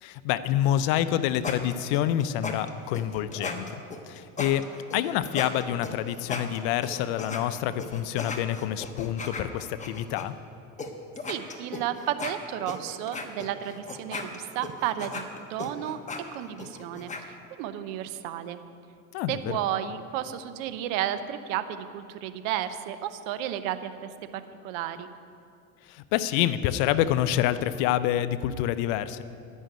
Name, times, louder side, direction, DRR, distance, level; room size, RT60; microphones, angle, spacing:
voice 1, 0.0-3.6 4.1-4.6 4.9-10.3 19.1-19.3 25.9-29.2, left 12 dB, 70° left, 13 dB, 0.7 m, -27 dB
sound 1, 1.0-7.4 7.8-10.2 10.8-10.9 11.2-17.2, left 3 dB, 20° left, 1.1 m, -37 dB
voice 2, 11.3-15.2 15.5-16.0 16.3-18.6 19.3-24.1 24.6-25.1, right 11 dB, 75° right, 11 dB, 0.8 m, -32 dB
11.0 x 6.4 x 9.1 m, 2.5 s
supercardioid pair, 105°, 40 cm